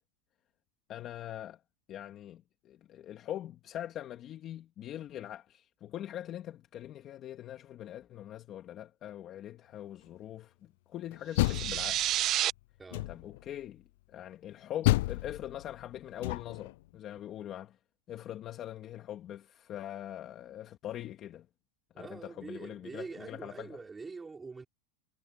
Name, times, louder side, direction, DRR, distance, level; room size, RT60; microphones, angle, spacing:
voice 1, 0.9-1.6 1.9-12.0 13.1-17.8 18.1-21.5 22.0-23.7, left 11 dB, 30° left, 2.4 m, -43 dB
Door, 11.1-12.3 12.9-13.5 14.8-16.7, left 20 dB, 65° left, 0.3 m, -31 dB
sound 1, 11.4-12.5, right 13 dB, 35° right, 1.1 m, -30 dB
voice 2, 12.8-13.1 21.9-24.7, right 4 dB, 10° right, 5.5 m, -44 dB
supercardioid pair, 145°, 0 cm